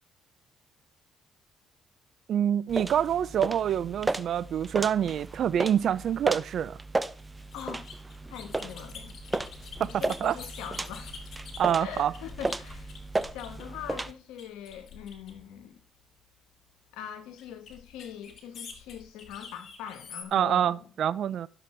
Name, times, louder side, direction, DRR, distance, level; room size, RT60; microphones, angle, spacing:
voice 1, 2.3-6.8 9.8-10.4 11.6-12.1 20.3-21.5, right 9 dB, 65° right, 0.4 m, -26 dB
sound 1, 2.7-14.1, right 2 dB, 15° right, 0.7 m, -35 dB
sound 2, 7.4-13.8 14.4-15.6 17.4-20.2, left 6 dB, 60° left, 2.5 m, -47 dB
voice 2, 7.5-7.9 8.3-9.5 9.8-11.2 11.8-12.9 13.3-15.8 16.9-20.8, left 9 dB, 85° left, 1.4 m, -42 dB
12.0 x 6.9 x 4.4 m
supercardioid pair, 75°, 0 cm